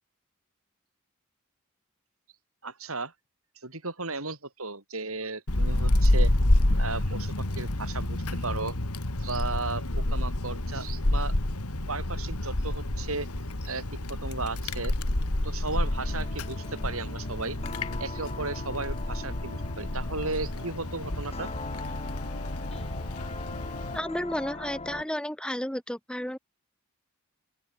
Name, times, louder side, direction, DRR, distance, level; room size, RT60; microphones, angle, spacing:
voice 1, 2.6-3.1 3.6-6.3 6.8-8.8 9.2-11.4 11.9-13.3 13.6-13.8 14.1-14.9 15.4-17.6 18.0-21.5, right 3 dB, 70° right, 7.0 m, -35 dB
Wind, 5.5-24.0, left 1 dB, 90° left, 2.5 m, -29 dB
sound 1, 15.7-25.1, left 2 dB, 30° left, 2.6 m, -41 dB
voice 2, 23.9-26.4, equal, 5° left, 2.5 m, -32 dB
open air
head